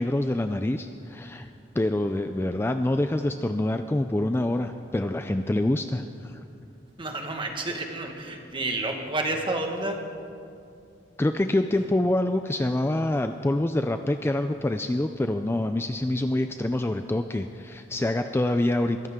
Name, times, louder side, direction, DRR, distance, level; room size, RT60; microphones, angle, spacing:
voice 1, 0.0-1.5 1.8-6.5 11.2-19.1, left 1 dB, 15° left, 8 dB, 0.4 m, -26 dB
voice 2, 7.0-10.0, right 2 dB, 25° right, 3 dB, 1.5 m, -30 dB
22.5 x 15.0 x 3.7 m, 2.4 s
head